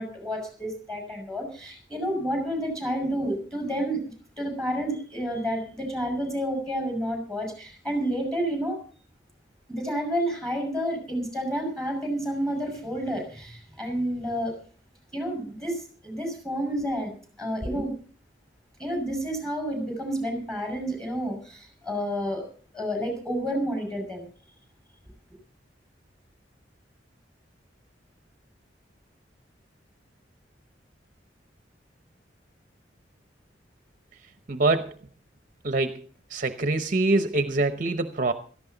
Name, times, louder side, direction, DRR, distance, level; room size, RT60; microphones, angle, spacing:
voice 1, 0.0-8.8 9.7-14.5 15.1-17.1 17.4-17.9 18.8-22.5 22.7-24.3, equal, 5° left, 4 dB, 5.9 m, -30 dB
voice 2, 34.5-34.9 35.6-35.9 36.3-38.3, right 2 dB, 45° right, 9 dB, 0.8 m, -24 dB
17.0 x 14.0 x 3.9 m, 0.41 s
head